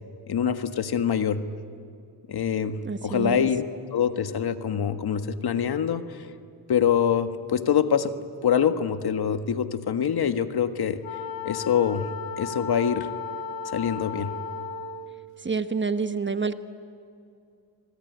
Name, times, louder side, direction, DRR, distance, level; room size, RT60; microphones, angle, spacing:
voice 1, 0.3-1.4 2.3-6.3 6.7-11.0 11.4-12.1 12.4-13.1 13.6-14.3, left 8 dB, 55° left, 9 dB, 1.7 m, -25 dB
voice 2, 2.8-3.4 15.4-16.5, right 5 dB, 25° right, 10 dB, 1.3 m, -27 dB
Wind instrument woodwind instrument, 11.0-15.2, left 5 dB, 80° left, 2.0 m, -35 dB
25.5 x 24.0 x 9.4 m, 2.5 s
cardioid pair, 70°, 45 cm